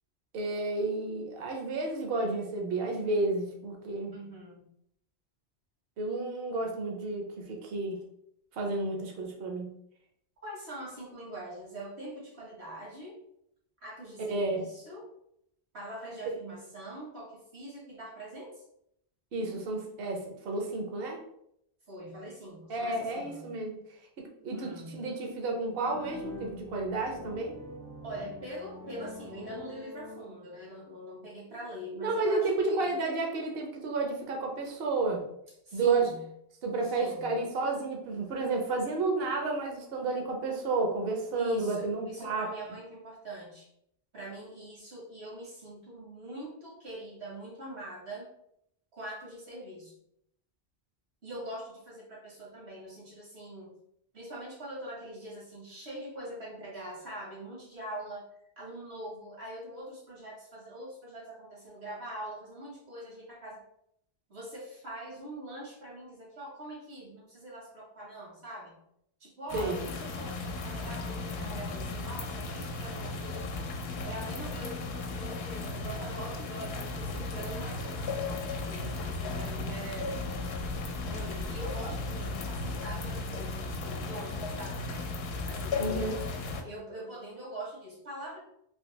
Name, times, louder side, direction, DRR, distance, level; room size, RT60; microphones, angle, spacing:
voice 1, 0.3-4.2 6.0-8.0 8.6-9.7 14.2-14.6 19.3-21.2 22.7-23.8 24.2-27.6 32.0-35.2 35.7-36.1 36.6-42.5 69.5-69.8 85.8-86.2, right 3 dB, 65° right, 1 dB, 0.9 m, -31 dB
voice 2, 4.1-4.7 10.4-13.2 13.8-15.1 15.7-18.6 21.9-23.6 24.5-25.1 28.0-32.9 35.6-36.3 36.8-37.4 41.3-43.7 44.1-48.3 48.9-50.0 51.2-53.8 54.1-58.2 58.6-63.6 64.3-68.8 69.2-73.5 74.0-80.1 81.0-84.9 85.5-86.2 86.5-88.4, right 1 dB, 85° right, -4 dB, 1.7 m, -43 dB
sound 1, 25.8-30.7, left 2 dB, 25° right, 0.5 m, -45 dB
sound 2, 69.5-86.6, left 3 dB, 70° left, 0.8 m, -35 dB
3.3 x 2.8 x 3.1 m, 0.74 s
omnidirectional pair, 1.1 m